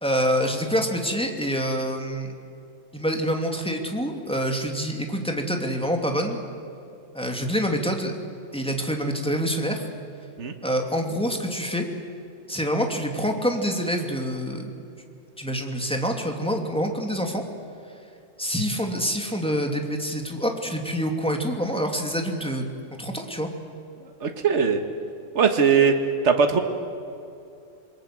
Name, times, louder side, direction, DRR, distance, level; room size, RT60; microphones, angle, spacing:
voice 1, 0.0-2.3 2.9-6.4 7.1-8.2 8.5-9.9 10.6-11.9 12.5-14.7 15.4-17.4 18.4-22.7 23.0-23.5, equal, 5° left, 3 dB, 2.6 m, -26 dB
voice 2, 24.2-24.8 25.4-25.9 26.2-26.6, right 6 dB, 65° right, 6 dB, 1.8 m, -19 dB
27.0 x 21.5 x 7.6 m, 2.6 s
omnidirectional pair, 1.3 m